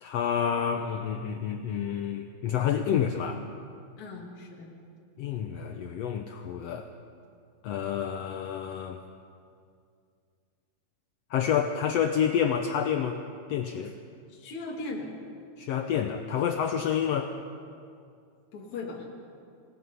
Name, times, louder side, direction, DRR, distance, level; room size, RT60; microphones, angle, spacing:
voice 1, 0.0-3.4 5.2-6.9 7.6-9.0 11.3-13.2 13.5-13.9 15.6-17.3, left 8 dB, 75° left, 5 dB, 1.5 m, -28 dB
voice 2, 4.0-4.7 13.8-13.9 14.3-15.1 18.5-19.1, left 3 dB, 60° left, -2 dB, 3.5 m, -38 dB
27.0 x 19.0 x 5.6 m, 2.3 s
omnidirectional pair, 3.9 m